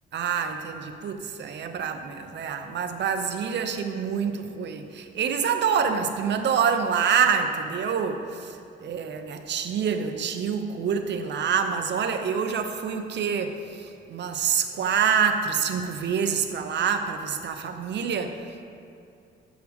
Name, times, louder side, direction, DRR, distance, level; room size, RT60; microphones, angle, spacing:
voice 1, 0.1-8.5 8.8-13.6 14.1-18.6, right 7 dB, 60° right, 7 dB, 0.8 m, -26 dB
13.0 x 7.7 x 3.6 m, 2.5 s
cardioid pair, 90°, 20 cm